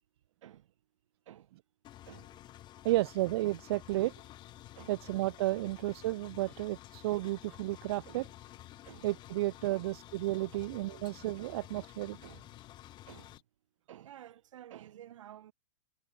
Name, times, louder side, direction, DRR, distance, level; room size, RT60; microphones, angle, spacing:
Engine, 1.8-13.4, left 13 dB, 25° left, 2.4 m, -52 dB
voice 1, 2.8-4.1 4.9-8.3 9.0-12.2, right 17 dB, 50° right, 0.4 m, -32 dB
sound 1, 4.0-13.4, left 21 dB, 50° left, 2.3 m, -61 dB
voice 2, 13.9-15.5, right 11 dB, 70° right, 2.4 m, -52 dB
hypercardioid pair, 135°, 17 cm